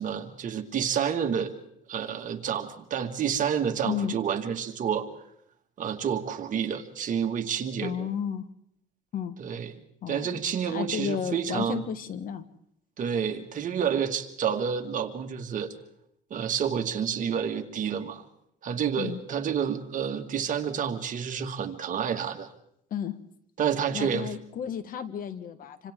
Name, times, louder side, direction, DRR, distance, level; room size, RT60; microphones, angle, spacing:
voice 1, 0.0-1.5 1.9-5.1 5.8-8.1 9.4-9.7 10.1-11.8 13.0-15.7 16.3-18.2 18.6-22.5 23.6-24.3, right 8 dB, 50° right, 5 dB, 2.0 m, -29 dB
voice 2, 3.8-4.1 7.8-8.4 9.1-9.4 10.0-10.3 10.7-12.4 19.0-19.2 22.9-23.2 23.9-25.9, left 8 dB, 55° left, 12 dB, 1.4 m, -32 dB
27.0 x 26.0 x 3.7 m, 0.75 s
cardioid pair, 110°, 17 cm